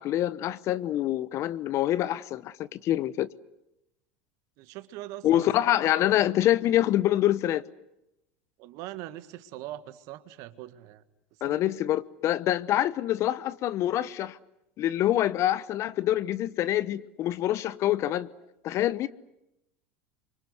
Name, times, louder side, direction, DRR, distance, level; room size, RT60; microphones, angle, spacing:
voice 1, 0.0-3.3 5.2-7.6 11.4-14.4 14.8-18.3 18.6-19.1, left 13 dB, 45° left, 1.0 m, -26 dB
voice 2, 4.6-5.5 8.6-11.0 11.4-11.7, right 14 dB, 55° right, 1.8 m, -41 dB
28.5 x 24.5 x 8.0 m
hypercardioid pair, 85°, 7 cm